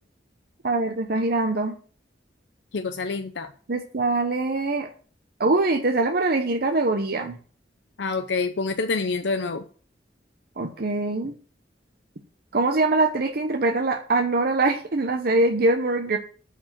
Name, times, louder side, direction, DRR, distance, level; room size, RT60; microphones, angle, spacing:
voice 1, 0.6-1.7 3.7-4.9 5.4-7.3 10.6-11.3 12.5-16.2, right 2 dB, 55° right, 4 dB, 0.9 m, -23 dB
voice 2, 2.7-3.5 8.0-9.6, left 4 dB, 70° left, 7 dB, 0.7 m, -27 dB
9.2 x 4.9 x 7.5 m, 0.42 s
head